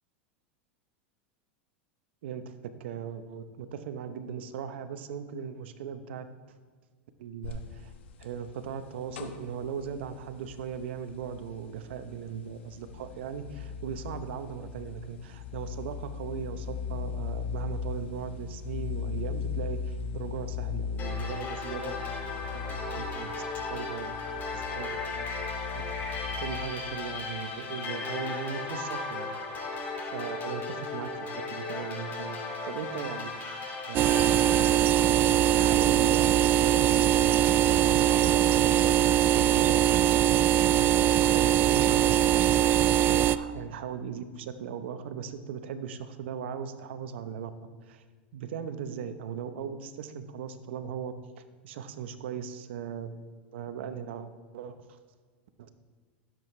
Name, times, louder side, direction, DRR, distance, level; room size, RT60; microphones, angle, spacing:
voice 1, 2.2-2.5 2.8-6.3 7.2-7.9 8.2-22.0 22.3-23.3 23.7-24.1 24.5-25.0 25.4-29.4 29.7-29.8 30.1-33.3 33.8-35.1 35.5-41.0 41.3-47.5 47.9-48.0 48.3-53.2 53.5-55.0 55.6-55.7, right 7 dB, 75° right, 10 dB, 0.9 m, -38 dB
sound 1, 7.4-26.6, left 6 dB, 80° left, 1.2 m, -38 dB
sound 2, 21.0-34.7, left 3 dB, 30° left, 2.3 m, -36 dB
sound 3, 33.9-43.4, right 11 dB, 35° right, 0.4 m, -22 dB
16.5 x 7.7 x 3.3 m, 1.5 s
hypercardioid pair, 110°, 6 cm